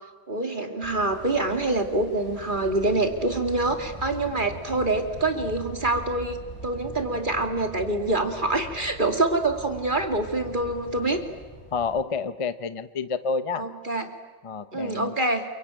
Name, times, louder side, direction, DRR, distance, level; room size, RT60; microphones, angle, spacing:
voice 1, 0.3-6.4 6.6-11.2 13.5-14.1 14.7-15.4, right 2 dB, 25° right, 5 dB, 2.4 m, -25 dB
sound 1, 0.8-12.0, right 1 dB, 15° left, 6.4 m, -42 dB
voice 2, 11.7-13.7 14.4-15.2, left 5 dB, 50° left, 12 dB, 0.3 m, -29 dB
28.0 x 23.5 x 9.0 m, 1.3 s
omnidirectional pair, 2.0 m